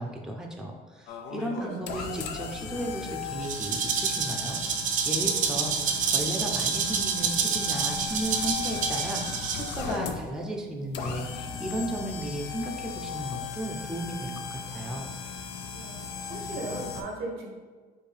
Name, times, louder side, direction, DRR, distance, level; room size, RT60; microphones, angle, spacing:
voice 1, 0.0-9.4 9.7-15.1, right 1 dB, 5° right, 1 dB, 0.5 m, -35 dB
sound 1, 1.1-17.0, left 5 dB, 85° left, 0.4 m, -37 dB
voice 2, 1.5-2.0 15.7-17.5, right 2 dB, 90° right, 1 dB, 0.9 m, -38 dB
Rattle (instrument), 3.4-9.9, right 6 dB, 50° right, 0.5 m, -28 dB
4.4 x 2.7 x 3.3 m, 1.4 s
cardioid pair, 110°, 17 cm